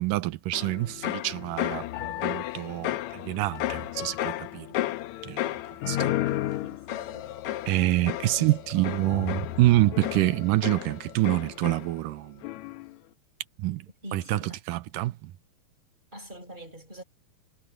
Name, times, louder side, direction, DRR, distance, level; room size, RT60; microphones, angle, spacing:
voice 1, 0.0-4.7 5.2-5.5 5.9-6.1 7.7-12.4 13.6-13.8 14.1-14.4 14.7-15.3, right 17 dB, 80° right, 2.2 m, -26 dB
sound 1, 0.5-12.1 12.4-12.9, left 14 dB, 75° left, 1.8 m, -33 dB
voice 2, 6.6-7.3 8.1-9.3 14.0-14.6 16.1-17.0, right 1 dB, 10° right, 6.4 m, -44 dB
omnidirectional pair, 4.0 m